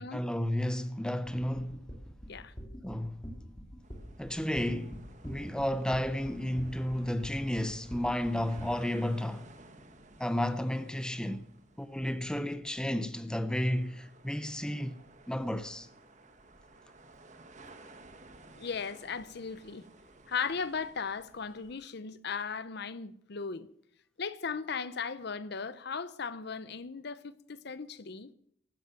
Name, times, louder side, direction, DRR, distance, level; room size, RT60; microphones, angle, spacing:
voice 1, 0.0-1.8 2.8-3.2 4.2-9.5 10.2-11.5 11.8-15.0 15.3-15.9, left 1 dB, 5° left, 0.6 m, -32 dB
sound 1, 1.2-8.7, equal, 20° left, 2.6 m, -45 dB
sound 2, 3.8-21.8, right 2 dB, 40° right, 1.4 m, -56 dB
voice 2, 18.5-19.9 20.3-23.7 24.2-28.3, left 5 dB, 55° left, 0.7 m, -37 dB
15.5 x 13.0 x 5.9 m
head